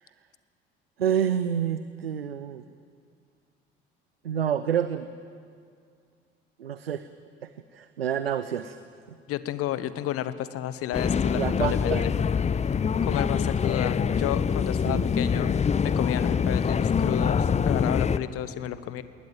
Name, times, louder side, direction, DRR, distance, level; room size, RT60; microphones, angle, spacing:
voice 1, 1.0-2.6 4.2-5.1 6.6-7.1 7.4-8.8 11.3-12.1 14.9-15.1 15.4-15.5, right 9 dB, 85° right, 13 dB, 0.6 m, -28 dB
voice 2, 9.3-12.1 13.0-15.5 15.8-19.0, left 12 dB, 50° left, 14 dB, 1.1 m, -31 dB
sound 1, 10.9-18.2, left 6 dB, 25° left, 0.7 m, -25 dB
20.5 x 19.0 x 9.1 m, 2.2 s
figure-of-eight pair, 55°, 30 cm